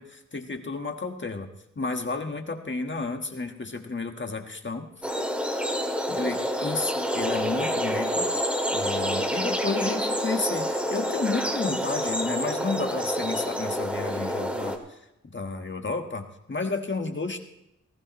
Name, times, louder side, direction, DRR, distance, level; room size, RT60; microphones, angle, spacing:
voice 1, 0.0-1.5 1.7-4.9 6.1-8.3 8.7-17.4, left 3 dB, 40° left, 4 dB, 1.5 m, -32 dB
sound 1, 5.0-14.8, equal, 5° right, 2.2 m, -28 dB
19.5 x 15.5 x 3.1 m, 0.84 s
wide cardioid pair, 100°, 29 cm